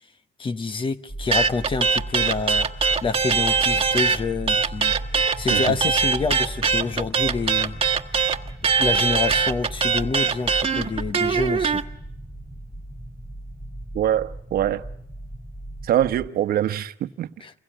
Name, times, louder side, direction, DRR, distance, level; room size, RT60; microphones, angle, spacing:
voice 1, 0.4-5.0 5.4-7.8 8.8-11.8 17.4-17.5, left 4 dB, 30° left, 1.2 m, -27 dB
sound 1, 1.1-16.3, right 1 dB, ahead, 1.4 m, -36 dB
sound 2, 1.3-4.2 4.5-11.8, right 5 dB, 35° right, 1.5 m, -21 dB
voice 2, 13.9-14.8 15.8-17.3, right 11 dB, 60° right, 1.2 m, -23 dB
29.5 x 22.0 x 8.9 m
cardioid pair, 110°, 17 cm